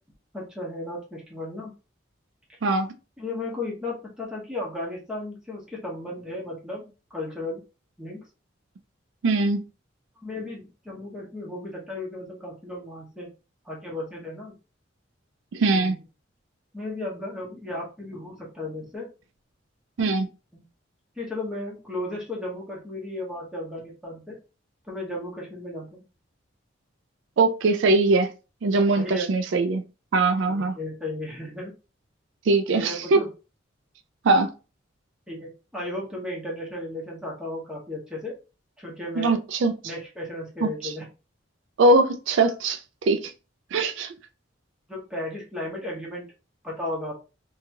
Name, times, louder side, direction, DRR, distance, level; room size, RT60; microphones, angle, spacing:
voice 1, 0.3-1.7 3.2-7.6 8.0-8.2 10.2-13.3 13.6-14.5 15.7-16.0 16.7-19.1 21.2-24.4 24.9-26.0 29.0-29.3 30.5-31.8 32.7-33.3 35.3-38.3 38.8-39.3 39.8-41.1 44.9-46.3 46.6-47.2, left 1 dB, 5° right, 1.0 m, -35 dB
voice 2, 2.6-2.9 9.2-9.6 15.5-16.0 20.0-20.3 27.4-28.3 28.6-29.8 30.1-30.8 32.5-33.2 34.2-34.5 39.2-39.7 40.6-40.9 41.8-43.3 43.7-44.1, right 3 dB, 70° right, 0.4 m, -21 dB
2.8 x 2.3 x 2.8 m
head